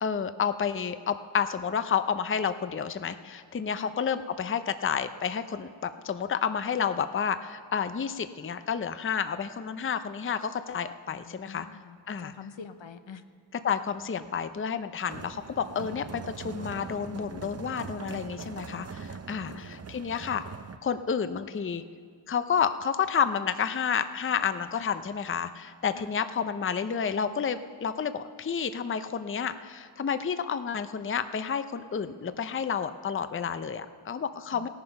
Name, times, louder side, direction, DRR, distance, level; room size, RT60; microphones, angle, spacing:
voice 1, 0.0-11.7 12.1-12.3 13.6-20.4 20.8-21.8 22.3-34.7, left 7 dB, 30° left, 11 dB, 0.5 m, -30 dB
voice 2, 11.1-13.2 15.9-16.0 19.4-19.7 25.9-26.1 34.5-34.7, left 6 dB, 75° left, 10 dB, 0.8 m, -46 dB
sound 1, 15.1-20.8, right 5 dB, 35° right, 0.6 m, -41 dB
17.0 x 9.5 x 5.8 m, 2.1 s
wide cardioid pair, 55°, 47 cm